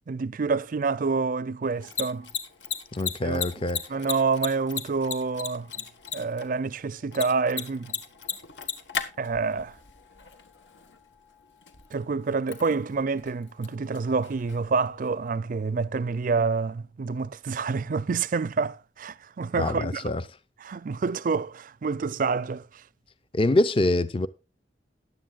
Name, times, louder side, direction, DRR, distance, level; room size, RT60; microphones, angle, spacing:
voice 1, 0.1-2.3 3.2-3.4 3.9-5.7 6.1-8.0 9.2-9.7 11.9-20.1 20.6-22.7, right 4 dB, 50° right, 0.4 m, -27 dB
Mechanisms, 1.7-15.3, left 7 dB, 90° left, 1.4 m, -38 dB
voice 2, 2.9-3.8 19.6-20.2 23.3-24.3, left 2 dB, 30° left, 0.5 m, -24 dB
15.0 x 10.5 x 2.4 m
head